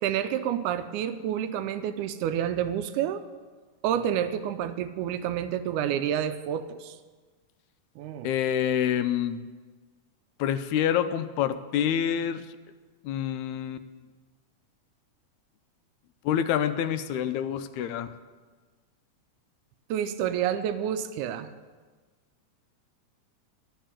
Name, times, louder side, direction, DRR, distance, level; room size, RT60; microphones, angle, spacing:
voice 1, 0.0-3.2 3.8-7.0 8.0-8.3 19.9-21.5, right 10 dB, 90° right, 10 dB, 2.1 m, -29 dB
voice 2, 8.2-9.4 10.4-12.4 13.0-13.8 16.3-18.1, left 9 dB, 80° left, 11 dB, 1.9 m, -27 dB
12.5 x 5.5 x 8.8 m, 1.4 s
omnidirectional pair, 3.5 m